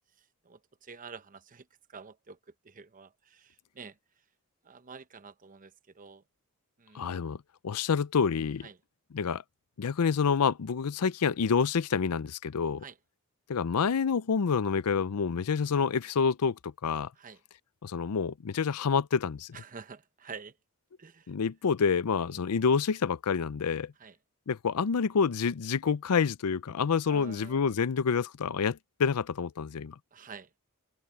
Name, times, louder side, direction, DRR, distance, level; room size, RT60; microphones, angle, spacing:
voice 1, 0.4-2.4 2.6-3.9 4.6-6.2 6.8-7.1 8.6-8.7 12.8-12.9 17.2-17.4 19.5-20.5 21.0-21.3 22.3-22.4 24.0-24.1 27.1-27.6 30.1-30.5, right 5 dB, 35° right, 0.9 m, -48 dB
voice 2, 6.9-7.4 7.6-8.7 9.1-9.4 9.8-12.8 13.5-17.1 17.8-19.6 21.3-23.9 24.5-30.0, left 6 dB, 80° left, 0.5 m, -28 dB
head